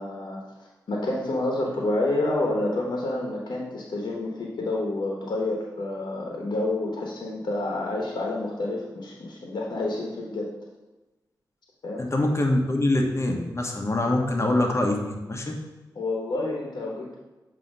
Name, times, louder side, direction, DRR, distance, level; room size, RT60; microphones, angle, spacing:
voice 1, 0.0-10.5 11.8-12.1 15.9-17.1, left 2 dB, 75° left, -1 dB, 1.0 m, -29 dB
voice 2, 12.0-15.6, left 1 dB, 40° left, 2 dB, 1.0 m, -24 dB
7.3 x 2.8 x 5.3 m, 1.1 s
cardioid pair, 50°, 7 cm